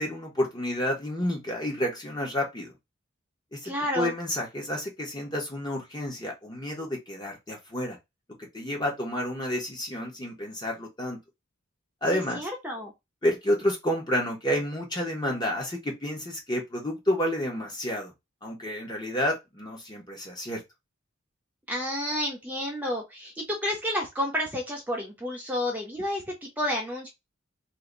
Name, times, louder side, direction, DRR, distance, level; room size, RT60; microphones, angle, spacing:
voice 1, 0.0-2.7 3.5-8.0 8.4-11.2 12.0-12.5 13.2-18.1 18.4-20.6, left 1 dB, 20° left, 0 dB, 1.2 m, -30 dB
voice 2, 3.6-4.1 12.1-12.9 21.7-27.1, left 1 dB, 10° right, -1 dB, 0.9 m, -30 dB
2.9 x 2.8 x 3.9 m, 0.20 s
head